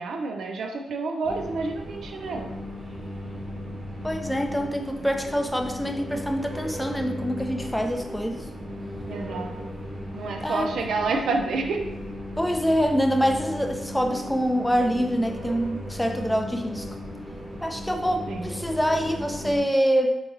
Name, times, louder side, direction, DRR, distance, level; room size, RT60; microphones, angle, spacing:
voice 1, 0.0-2.5 9.1-9.7 10.1-11.8 18.3-18.5, right 3 dB, 80° right, 4 dB, 0.3 m, -29 dB
sound 1, 1.2-19.6, equal, 40° right, 1.1 m, -36 dB
voice 2, 4.0-8.5 10.4-10.7 12.4-17.0 17.6-20.2, equal, 5° left, 4 dB, 0.4 m, -25 dB
3.7 x 3.0 x 2.6 m, 0.94 s
cardioid pair, 60°, 0 cm